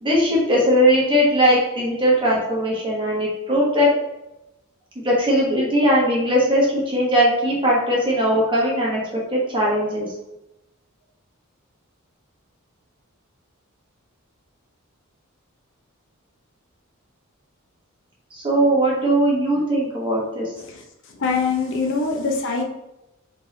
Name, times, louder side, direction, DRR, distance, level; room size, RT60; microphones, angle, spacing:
voice 1, 0.0-3.9 5.0-10.1 18.3-20.5, equal, 25° right, -4 dB, 1.3 m, -19 dB
voice 2, 21.2-22.6, left 4 dB, 60° left, 2 dB, 0.6 m, -23 dB
4.1 x 3.6 x 3.2 m, 0.92 s
head